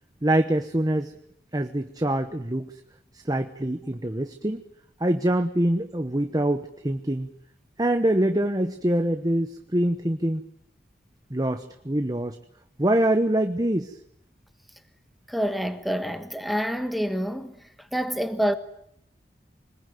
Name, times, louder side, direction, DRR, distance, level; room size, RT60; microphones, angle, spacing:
voice 1, 0.2-1.1 1.5-2.7 3.1-4.6 5.0-7.3 7.8-10.4 11.3-12.4 12.8-13.9, right 1 dB, 20° right, 1.0 m, -24 dB
voice 2, 15.3-18.5, equal, ahead, 1.4 m, -27 dB
25.5 x 20.5 x 9.4 m
head